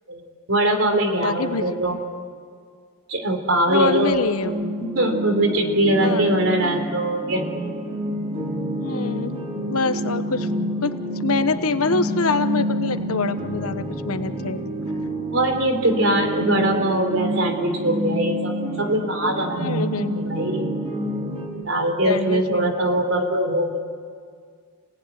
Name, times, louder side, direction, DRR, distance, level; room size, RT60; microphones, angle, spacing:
voice 1, 0.1-2.0 3.1-4.2 4.8-7.5 15.3-20.8 21.6-23.8, right 1 dB, 65° right, 4 dB, 3.9 m, -22 dB
voice 2, 0.9-1.8 3.7-4.5 6.0-6.3 8.7-9.3 9.7-10.5 10.8-14.7 19.5-20.2 22.0-23.0, left 3 dB, 85° left, 10 dB, 1.2 m, -25 dB
sound 1, 4.4-21.5, equal, 25° right, 6.3 m, -28 dB
29.5 x 18.5 x 9.5 m, 2.1 s
head